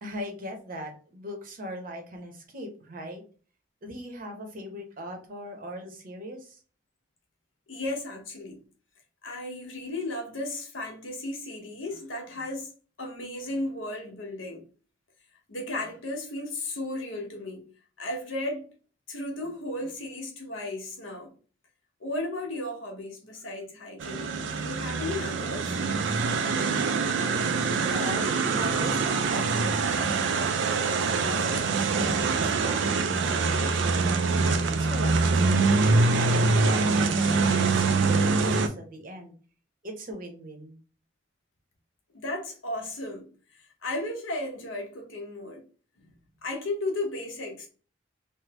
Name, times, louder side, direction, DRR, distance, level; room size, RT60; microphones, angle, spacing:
voice 1, 0.0-3.2 3.8-6.6 27.8-34.0 34.7-35.9 36.3-39.3 39.8-40.8, equal, 45° right, 0.8 m, -40 dB
voice 2, 7.7-8.6 9.2-14.7 15.5-17.6 18.0-18.7 19.1-21.3 22.0-25.8 42.1-45.6 46.4-47.7, left 2 dB, 80° left, 1.0 m, -35 dB
sound 1, 24.0-38.7, right 4 dB, 65° right, 0.4 m, -24 dB
3.3 x 2.1 x 2.9 m
head